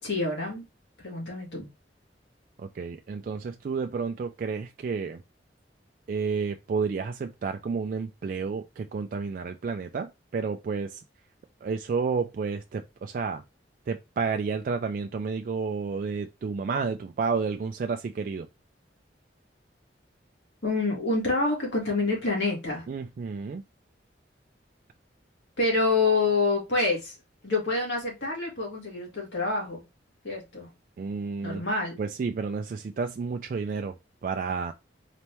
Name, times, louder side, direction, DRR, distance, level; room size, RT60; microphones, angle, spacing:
voice 1, 0.0-0.6 1.0-1.7 20.6-22.9 25.6-27.1 27.4-29.8 30.2-30.7 31.4-32.0, left 3 dB, 80° left, 2.1 m, -27 dB
voice 2, 2.6-5.2 6.1-11.0 11.6-13.4 13.9-18.5 22.9-23.6 31.0-31.6 32.0-33.9 34.2-34.7, right 5 dB, 50° right, 0.3 m, -31 dB
4.1 x 2.9 x 3.4 m
head